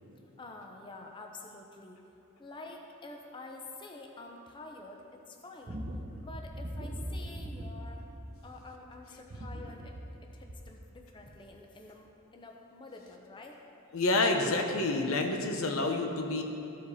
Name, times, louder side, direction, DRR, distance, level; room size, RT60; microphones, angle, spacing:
voice 1, 0.4-2.0 2.4-5.9 6.2-8.0 8.4-13.6, left 2 dB, 25° left, 1 dB, 0.6 m, -48 dB
sound 1, 5.6-8.7 9.1-10.8 11.3-11.5, equal, 45° right, 0.7 m, -40 dB
voice 2, 13.9-16.4, left 2 dB, 75° left, 3 dB, 0.8 m, -28 dB
13.5 x 5.1 x 4.1 m, 2.9 s
head